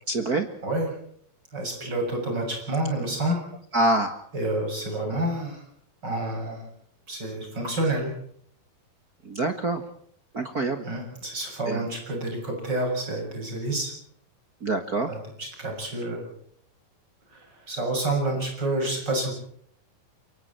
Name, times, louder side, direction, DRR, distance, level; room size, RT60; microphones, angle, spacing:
voice 1, 0.1-0.5 3.7-4.2 9.2-9.8 10.3-10.8 11.7-11.8 14.6-15.1, right 2 dB, 55° right, 7 dB, 1.0 m, -25 dB
voice 2, 1.5-3.4 4.3-5.6 6.0-6.7 7.1-8.1 10.8-13.9 15.1-16.3 17.3-19.3, right 1 dB, 25° right, 2 dB, 7.5 m, -29 dB
28.5 x 24.0 x 4.4 m, 0.64 s
omnidirectional pair, 4.3 m